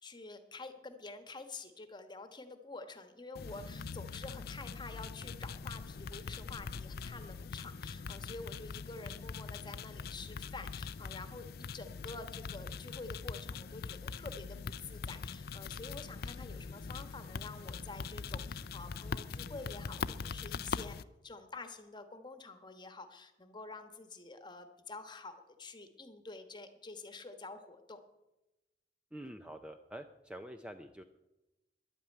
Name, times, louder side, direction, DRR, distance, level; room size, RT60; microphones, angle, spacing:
voice 1, 0.0-20.9 21.2-28.0, left 3 dB, 25° left, 8 dB, 1.2 m, -48 dB
sound 1, 3.3-21.0, left 5 dB, 60° left, 0.5 m, -42 dB
voice 2, 29.1-31.0, right 1 dB, 5° right, 7 dB, 0.5 m, -47 dB
11.0 x 8.8 x 9.1 m, 0.98 s
head